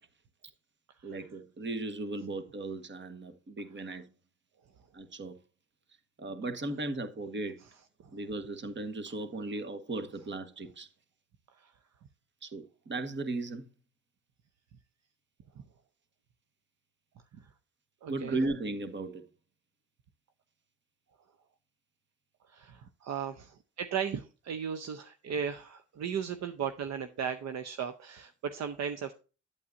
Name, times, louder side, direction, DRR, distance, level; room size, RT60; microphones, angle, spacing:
voice 1, 1.0-4.1 4.9-5.4 6.2-7.6 8.1-10.9 12.4-13.6 18.1-19.2, right 2 dB, 40° right, 1.4 m, -36 dB
voice 2, 18.0-18.4 22.5-29.1, right 7 dB, 60° right, 0.8 m, -36 dB
8.5 x 8.3 x 2.6 m
cardioid pair, 90°, 30 cm